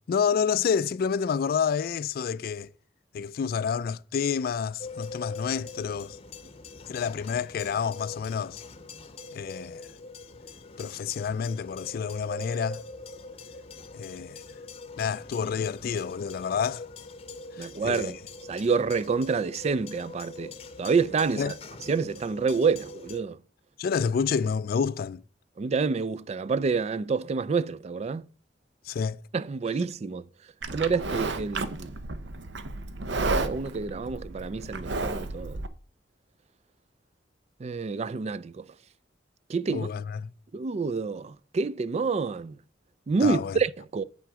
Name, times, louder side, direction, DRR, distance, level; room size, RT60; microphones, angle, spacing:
voice 1, 0.1-2.7 3.1-6.2 6.9-8.6 9.3-9.8 10.8-12.8 13.9-14.4 15.0-16.9 17.6-18.1 21.4-21.5 23.8-25.2 28.9-29.2 39.7-40.3 43.2-43.6, left 6 dB, 55° left, 0.3 m, -29 dB
sound 1, 4.8-23.2, left 3 dB, 35° left, 0.7 m, -43 dB
voice 2, 17.6-18.2 18.5-20.5 20.8-21.5 21.9-23.4 25.6-28.2 29.3-30.2 30.7-32.0 33.2-35.6 37.6-38.6 39.5-39.9 40.5-42.6 43.1-44.0, right 4 dB, 35° right, 0.3 m, -28 dB
Livestock farm animals working animals, 30.6-35.7, right 3 dB, 75° right, 0.7 m, -32 dB
7.7 x 6.1 x 4.8 m
head